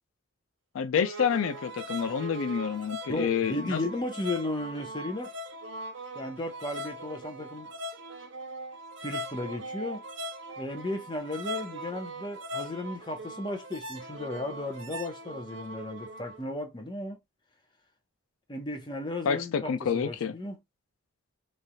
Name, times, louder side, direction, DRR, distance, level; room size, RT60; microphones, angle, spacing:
voice 1, 0.7-3.8 19.3-20.3, left 7 dB, 85° left, 0.4 m, -28 dB
sound 1, 1.0-16.4, right 1 dB, 65° right, 0.7 m, -40 dB
voice 2, 3.1-5.3 6.1-7.7 9.0-10.0 10.6-17.2 18.5-20.6, left 2 dB, 20° left, 0.8 m, -35 dB
3.2 x 2.7 x 2.2 m
head